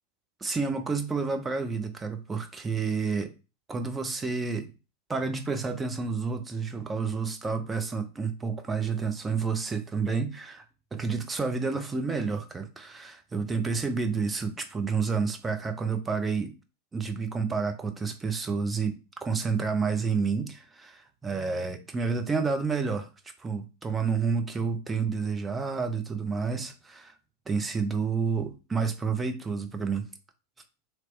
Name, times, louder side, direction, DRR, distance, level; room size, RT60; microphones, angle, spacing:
voice 1, 0.4-3.3 3.7-4.7 5.1-10.6 10.9-16.5 16.9-23.1 23.4-27.1 27.5-30.0, right 5 dB, 15° right, 0.6 m, -29 dB
3.1 x 3.0 x 3.1 m
figure-of-eight pair, 90°, 0 cm